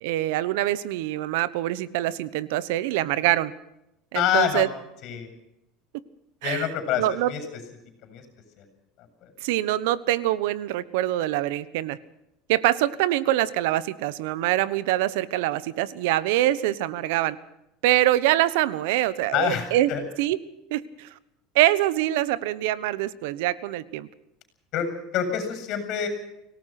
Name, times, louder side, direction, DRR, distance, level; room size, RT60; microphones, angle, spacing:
voice 1, 0.0-3.5 4.1-4.7 6.4-6.7 7.0-7.3 9.4-12.0 12.5-17.4 17.8-19.9 20.2-20.4 20.7-21.1 21.5-24.1, right 15 dB, 75° right, 18 dB, 1.2 m, -24 dB
voice 2, 4.1-4.6 5.0-5.3 6.4-7.4 8.0-8.2 8.6-8.7 9.2-9.3 19.3-20.0 24.7-26.1, left 9 dB, 45° left, 9 dB, 7.3 m, -26 dB
25.5 x 18.0 x 6.0 m, 0.83 s
cardioid pair, 155°, 0 cm